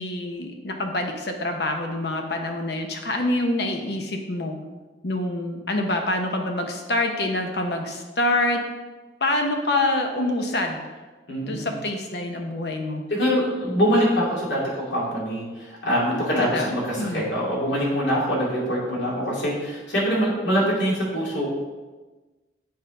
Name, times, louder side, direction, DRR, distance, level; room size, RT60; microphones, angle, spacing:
voice 1, 0.0-4.6 5.0-8.6 9.2-10.8 11.4-13.0 16.1-16.7 17.0-17.3, left 2 dB, 60° left, 3 dB, 0.9 m, -26 dB
voice 2, 11.3-11.7 13.1-21.5, equal, 75° left, -5 dB, 2.7 m, -24 dB
8.0 x 5.2 x 5.2 m, 1.2 s
head